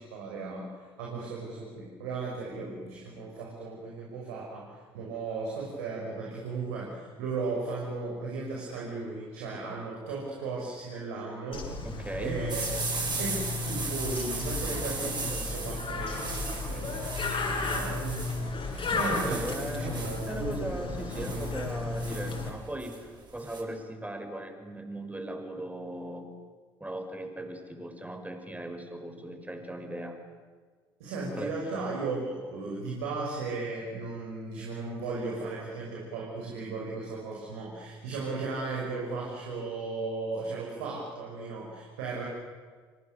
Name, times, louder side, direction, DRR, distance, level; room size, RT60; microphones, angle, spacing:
voice 1, 0.0-11.7 12.2-12.6 12.9-17.0 17.6-18.4 18.9-20.7 21.1-21.5 31.0-42.3, right 3 dB, 75° right, -3 dB, 6.2 m, -36 dB
Bird, 11.5-22.5, left 3 dB, 45° left, 7.8 m, -34 dB
voice 2, 11.8-12.6 18.9-26.3 26.8-30.2 31.3-31.6, right 1 dB, 10° right, 5 dB, 5.9 m, -38 dB
sound 1, 12.5-23.6, right 4 dB, 35° right, 7.4 m, -37 dB
30.0 x 26.5 x 6.9 m, 1.5 s
figure-of-eight pair, 50°, 13 cm